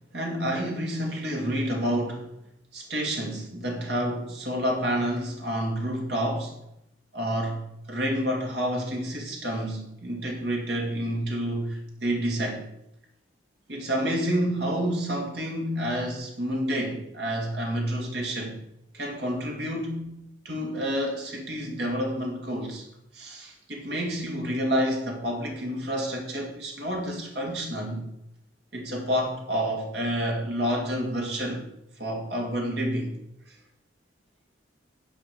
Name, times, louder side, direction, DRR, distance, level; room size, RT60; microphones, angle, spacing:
voice 1, 0.1-2.3 2.7-6.6 7.1-7.6 7.9-12.6 13.7-18.6 18.9-20.1 20.4-22.8 23.1-28.1 28.7-31.6 32.0-33.1 33.5-33.6, equal, 55° right, 2.3 m, -29 dB
10.0 x 5.2 x 6.6 m
head